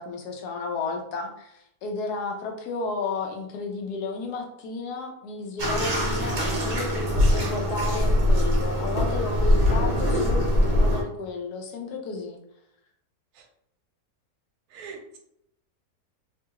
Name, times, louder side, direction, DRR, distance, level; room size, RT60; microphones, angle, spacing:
voice 1, 0.0-12.4, left 3 dB, 80° left, 3 dB, 1.1 m, -32 dB
Bathtub (filling or washing), 5.6-11.0, left 1 dB, 45° right, 0.9 m, -22 dB
voice 2, 14.7-15.2, right 5 dB, 80° right, 4 dB, 1.1 m, -40 dB
3.0 x 2.3 x 2.8 m, 0.77 s
omnidirectional pair, 1.6 m